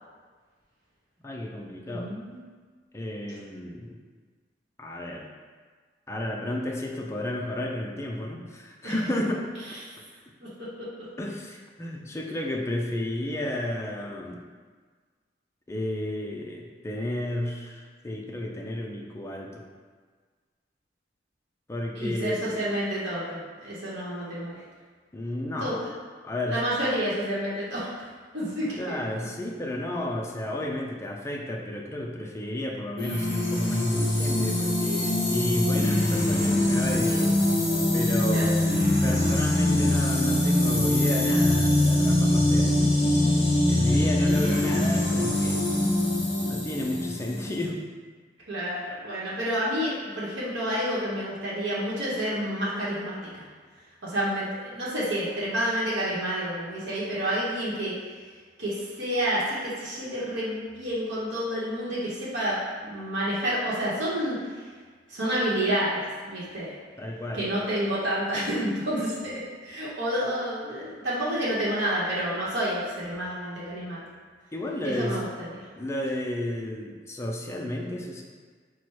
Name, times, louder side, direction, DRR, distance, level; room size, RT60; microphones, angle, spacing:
voice 1, 1.2-2.1 2.9-4.0 4.8-5.2 6.1-9.5 11.2-14.4 15.7-19.5 21.7-22.6 25.1-25.8 26.2-26.6 28.8-37.3 37.9-42.9 43.6-45.6 46.3-47.8 67.0-67.4 74.5-75.2 75.8-78.2, left 1 dB, 15° left, 0 dB, 0.4 m, -32 dB
voice 2, 1.9-2.4 8.8-8.9 9.8-9.9 10.4-10.5 10.8-10.9 21.9-24.6 25.6-25.9 26.5-27.9 28.3-29.0 38.3-38.5 43.4-43.5 48.5-53.4 54.0-57.9 58.6-64.7 65.1-66.8 67.3-74.0 74.8-75.7, equal, 75° right, -8 dB, 0.9 m, -29 dB
sound 1, 33.0-47.7, left 1 dB, 35° left, 1.4 m, -23 dB
4.3 x 2.1 x 4.6 m, 1.5 s
head